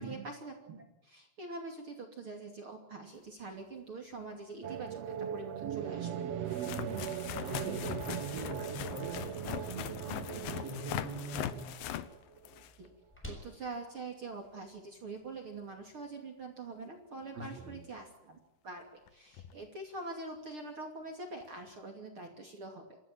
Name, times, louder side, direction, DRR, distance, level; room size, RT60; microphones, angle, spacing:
voice 1, 0.0-6.3 12.8-12.9 13.3-18.4 18.6-23.0, right 3 dB, 40° right, 3 dB, 3.1 m, -44 dB
sound 1, 4.3-4.4 5.6-5.7 6.5-12.9 18.0-18.1 19.1-19.2 19.3-19.6 21.4-21.5, left 12 dB, 75° left, 2.6 m, -41 dB
sound 2, 4.6-12.6, right 9 dB, 85° right, 1.4 m, -39 dB
voice 2, 6.7-7.1 7.4-11.6 17.3-17.8, right 3 dB, 65° right, -1 dB, 6.5 m, -42 dB
sound 3, 7.4-15.4, left 1 dB, 5° left, 6.0 m, -55 dB
26.5 x 14.5 x 9.2 m, 0.94 s
omnidirectional pair, 4.3 m